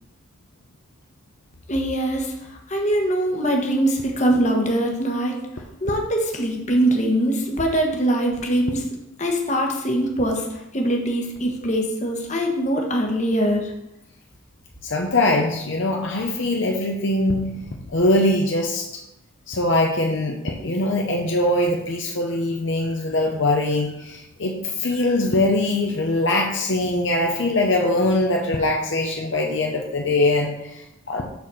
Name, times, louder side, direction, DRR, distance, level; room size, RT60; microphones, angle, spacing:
voice 1, 1.7-2.3 2.7-5.4 5.8-8.8 9.2-10.4 10.7-13.7, right 1 dB, 35° left, 1 dB, 1.3 m, -22 dB
voice 2, 14.8-17.5 17.9-18.9 19.5-31.3, left 1 dB, 65° left, 1 dB, 0.8 m, -22 dB
7.0 x 4.3 x 6.2 m, 0.85 s
head